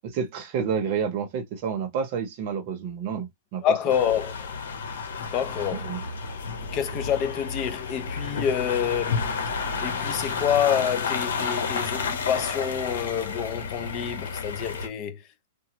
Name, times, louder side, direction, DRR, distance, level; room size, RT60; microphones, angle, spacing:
voice 1, 0.0-3.6 5.8-6.0, right 7 dB, 40° right, 0.7 m, -29 dB
voice 2, 3.6-4.5 5.2-6.0 6.7-9.3 9.8-15.5, left 9 dB, 25° left, 0.5 m, -27 dB
sound 1, 3.9-14.9, left 5 dB, 90° left, 0.8 m, -31 dB
2.9 x 2.1 x 2.9 m
supercardioid pair, 165°, 0 cm